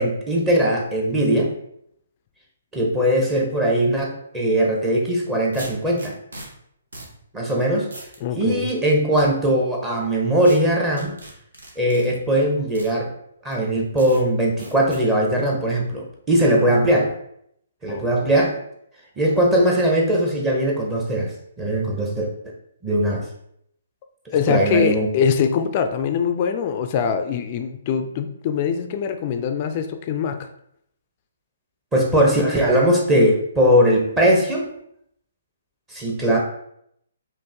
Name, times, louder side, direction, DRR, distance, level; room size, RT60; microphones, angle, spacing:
voice 1, 0.0-1.5 2.7-6.1 7.3-7.9 8.4-11.2 11.8-13.1 13.4-17.1 17.8-18.5 19.2-22.3 22.8-23.2 24.5-25.1 31.9-34.7 35.9-36.4, right 1 dB, 15° right, -2 dB, 0.9 m, -20 dB
sound 1, 4.7-4.9 5.5-6.5 6.9-7.1 7.5-7.6 7.9-8.2 8.7-9.2 10.4-10.6 11.0-12.1 12.7-12.9 13.5-13.6 14.0-14.2 14.6-15.0, right 1 dB, 75° right, 1.2 m, -39 dB
voice 2, 8.2-8.7 16.5-16.9 17.9-18.3 24.3-30.5, left 7 dB, 35° left, 7 dB, 0.4 m, -23 dB
5.1 x 2.5 x 3.4 m, 0.72 s
figure-of-eight pair, 130°, 0 cm